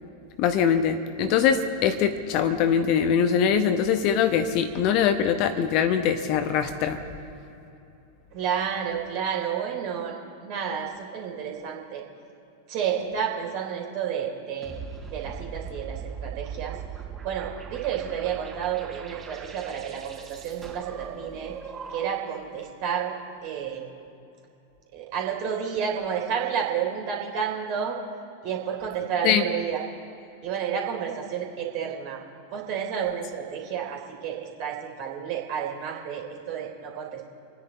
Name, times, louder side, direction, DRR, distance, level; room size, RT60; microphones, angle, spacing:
voice 1, 0.4-7.0 29.2-29.4, left 8 dB, 40° left, 9 dB, 1.0 m, -22 dB
voice 2, 8.3-10.1 10.4-12.0 12.7-14.8 15.1-16.8 17.2-21.5 21.9-23.1 23.4-23.9 24.9-28.0 28.4-29.8 30.4-32.2 32.5-37.3, right 8 dB, 45° right, 0 dB, 3.2 m, -30 dB
sound 1, 14.6-22.4, right 6 dB, 25° right, 3.4 m, -40 dB
28.5 x 10.0 x 4.2 m, 2.7 s
figure-of-eight pair, 90°, 0 cm